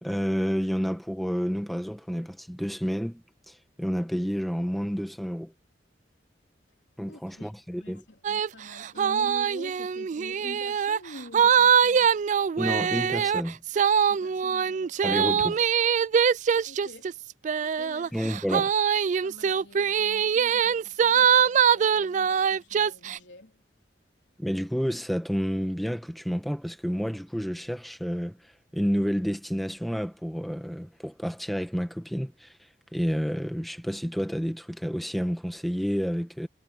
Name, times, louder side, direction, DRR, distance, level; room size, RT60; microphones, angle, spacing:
voice 1, 0.0-5.5 7.0-8.0 12.6-13.6 15.0-15.6 18.1-18.7 24.4-28.4 28.7-32.5 32.9-36.5, equal, ahead, 1.5 m, -30 dB
voice 2, 7.0-7.5 7.8-12.2 14.1-15.2 16.6-17.2 17.6-18.3 19.2-23.6, left 1 dB, 90° left, 3.7 m, -47 dB
sound 1, 8.2-8.5 8.8-23.2, right 7 dB, 45° right, 0.3 m, -23 dB
head